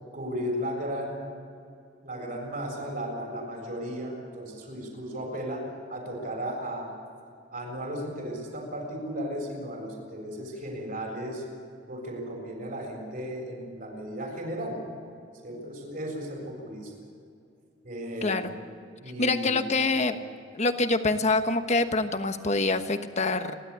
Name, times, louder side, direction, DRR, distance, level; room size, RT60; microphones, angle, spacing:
voice 1, 0.1-1.2 2.0-5.6 5.9-6.9 7.5-11.4 11.9-14.8 15.4-16.9 17.8-18.4 19.0-19.6, equal, 50° right, 0 dB, 7.3 m, -35 dB
voice 2, 18.2-18.5 19.2-20.2 20.5-23.6, left 3 dB, 40° left, 8 dB, 1.2 m, -25 dB
30.0 x 12.5 x 8.7 m, 2.4 s
head